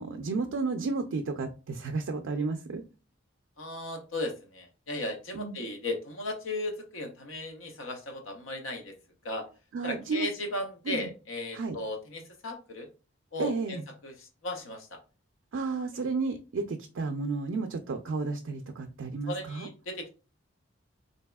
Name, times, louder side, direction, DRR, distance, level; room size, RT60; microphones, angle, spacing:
voice 1, 0.0-2.8 5.3-5.6 9.7-10.3 10.9-11.1 11.5-11.8 13.4-13.8 15.5-19.7, right 4 dB, 75° right, 5 dB, 0.4 m, -32 dB
voice 2, 3.6-8.9 9.2-9.4 9.8-12.9 13.3-15.0 15.9-16.0 19.3-20.1, left 2 dB, 80° left, 4 dB, 0.8 m, -36 dB
4.0 x 2.7 x 2.3 m, 0.32 s
head